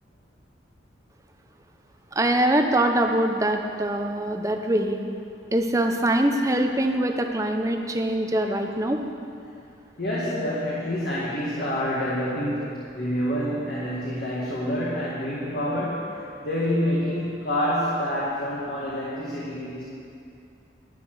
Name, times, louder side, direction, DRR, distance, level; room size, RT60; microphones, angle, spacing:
voice 1, 2.1-5.0 5.5-9.0, right 1 dB, 15° right, 4 dB, 0.7 m, -23 dB
voice 2, 10.0-16.1 16.4-19.8, equal, 55° left, -7 dB, 2.0 m, -27 dB
11.5 x 10.0 x 6.2 m, 2.5 s
head